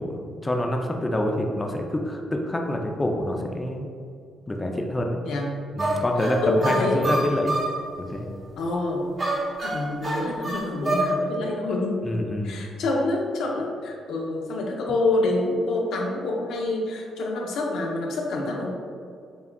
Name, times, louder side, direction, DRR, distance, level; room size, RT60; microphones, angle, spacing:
voice 1, 0.0-3.8 4.5-5.2 5.8-7.5 8.0-8.3 11.4-11.7 12.0-12.6, left 1 dB, 15° left, 1 dB, 0.4 m, -27 dB
sound 1, 5.8-7.8 9.2-11.2, right 1 dB, 40° right, 0.9 m, -27 dB
voice 2, 6.4-7.1 8.6-9.0 9.6-18.7, left 2 dB, 80° left, 0 dB, 0.6 m, -27 dB
6.9 x 2.3 x 2.2 m, 2.3 s
cardioid pair, 90°, 0 cm